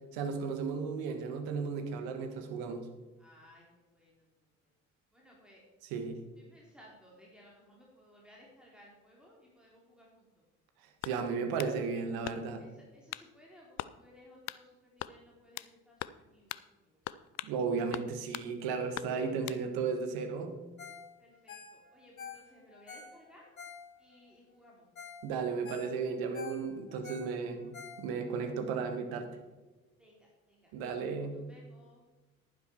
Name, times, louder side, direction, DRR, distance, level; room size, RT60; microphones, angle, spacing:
voice 1, 0.1-2.8 5.8-6.2 11.0-12.6 17.4-20.6 25.2-29.3 30.7-31.4, right 5 dB, 60° right, 7 dB, 1.6 m, -34 dB
voice 2, 3.2-4.3 5.1-5.6 6.5-10.3 12.6-17.0 19.1-19.5 21.2-23.4 24.0-24.9 30.0-30.7 31.3-32.0, left 1 dB, ahead, -4 dB, 3.4 m, -59 dB
sound 1, 11.0-11.8 12.2-12.7 13.1-13.3 13.8-14.0 14.5-14.6 15.0-15.7 16.0-16.2 16.5-16.7 17.1-17.6 17.9-18.5 18.9-19.6, left 15 dB, 45° left, 0.5 m, -41 dB
Ringtone, 20.8-21.1 21.3-24.2 24.7-24.8 25.0-25.2 25.5-28.4 28.8-28.9, left 6 dB, 85° left, 1.2 m, -48 dB
11.0 x 10.5 x 4.5 m, 1.2 s
figure-of-eight pair, 50°, 41 cm